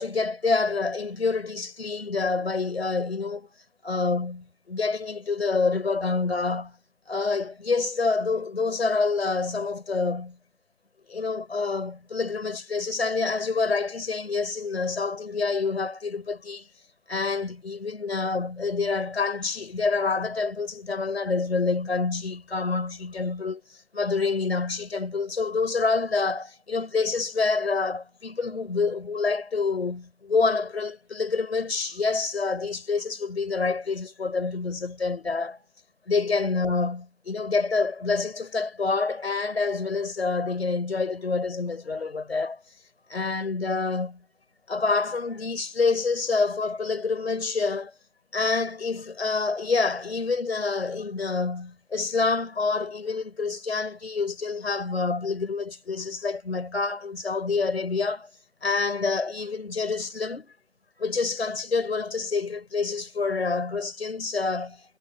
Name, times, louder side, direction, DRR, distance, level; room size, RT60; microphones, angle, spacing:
voice 1, 0.0-3.5 3.8-6.8 7.1-10.4 11.1-16.7 17.1-23.6 23.9-35.6 36.1-42.6 43.1-44.2 44.7-47.9 48.3-58.3 58.6-60.5 61.0-65.0, left 4 dB, 60° left, 5.1 m, -27 dB
figure-of-eight pair, 150°, 36 cm